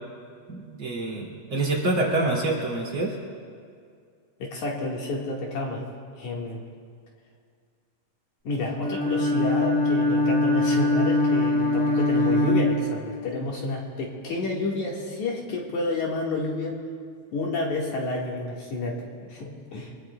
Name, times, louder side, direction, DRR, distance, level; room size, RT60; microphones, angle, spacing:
voice 1, 0.5-3.1, right 2 dB, 40° right, -4 dB, 3.2 m, -26 dB
voice 2, 4.4-5.8 6.2-6.6 8.4-16.8 17.3-19.9, left 2 dB, 65° left, -3 dB, 3.0 m, -30 dB
Bowed string instrument, 8.8-13.4, left 2 dB, 20° right, 4.7 m, -22 dB
24.5 x 19.5 x 2.3 m, 2.2 s
omnidirectional pair, 3.9 m